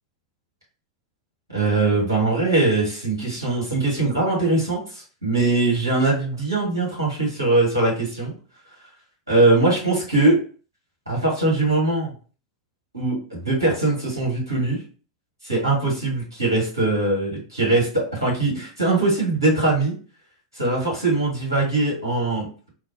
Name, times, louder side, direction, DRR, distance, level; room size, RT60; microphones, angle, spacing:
voice 1, 1.5-8.3 9.3-10.4 11.1-12.1 12.9-14.8 15.4-19.9 20.5-22.7, right 2 dB, 85° right, -5 dB, 1.5 m, -21 dB
3.3 x 2.1 x 2.6 m, 0.39 s
figure-of-eight pair, 90°, 2 cm